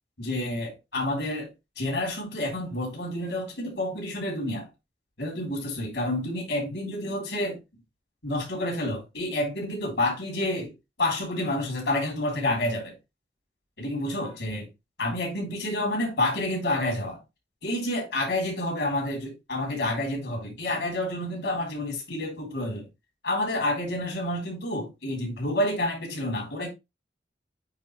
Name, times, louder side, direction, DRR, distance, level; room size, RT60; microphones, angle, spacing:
voice 1, 0.2-4.7 5.2-7.6 8.2-12.9 13.8-14.7 15.0-17.2 17.6-22.9 23.2-26.7, left 1 dB, 85° left, 3.8 m, -29 dB
8.9 x 3.6 x 3.3 m
head